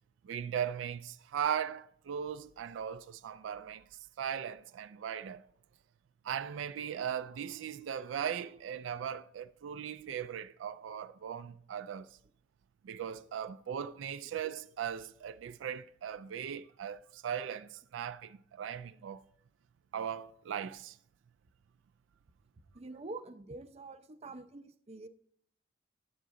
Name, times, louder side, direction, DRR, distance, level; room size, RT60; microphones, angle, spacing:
voice 1, 0.2-3.8 4.2-5.4 6.2-12.1 12.8-19.2 19.9-21.0, right 8 dB, 85° right, 0.3 m, -38 dB
voice 2, 22.7-25.1, right 2 dB, 35° right, 0.5 m, -46 dB
10.0 x 7.9 x 3.7 m
head